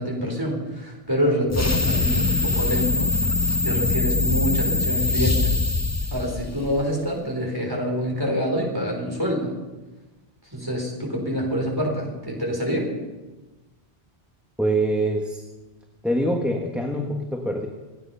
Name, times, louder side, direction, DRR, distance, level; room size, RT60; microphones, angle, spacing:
voice 1, 0.0-3.1 3.6-5.5 6.1-9.5 10.5-12.9, equal, 20° right, -1 dB, 4.3 m, -26 dB
sound 1, 1.5-6.9, left 3 dB, 20° left, 0.5 m, -23 dB
voice 2, 14.6-15.4 16.0-17.7, right 1 dB, ahead, 1 dB, 1.4 m, -24 dB
26.5 x 9.6 x 5.6 m, 1.2 s
omnidirectional pair, 1.2 m